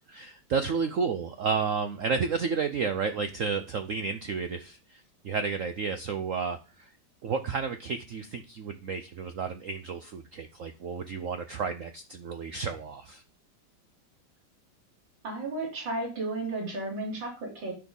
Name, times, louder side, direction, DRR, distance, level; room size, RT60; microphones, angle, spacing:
voice 1, 0.1-6.9 7.2-13.2, right 5 dB, 85° right, 9 dB, 0.7 m, -31 dB
voice 2, 15.2-17.7, right 2 dB, 60° right, -1 dB, 4.3 m, -33 dB
10.0 x 6.3 x 5.3 m, 0.33 s
omnidirectional pair, 2.3 m